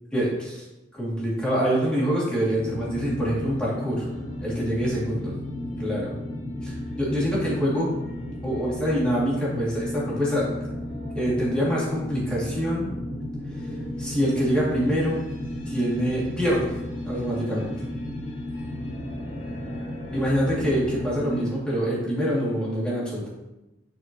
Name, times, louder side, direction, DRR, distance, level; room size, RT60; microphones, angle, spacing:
voice 1, 0.1-0.6 0.9-4.0 4.4-5.3 5.8-6.2 6.6-7.9 8.4-10.5 11.1-12.9 13.6-13.7 14.0-15.3 15.7-16.7 17.0-17.7 20.1-23.3, equal, 5° left, -8 dB, 2.4 m, -25 dB
sound 1, 2.6-21.5, left 1 dB, 85° left, 2.2 m, -34 dB
10.0 x 4.6 x 3.0 m, 1.0 s
head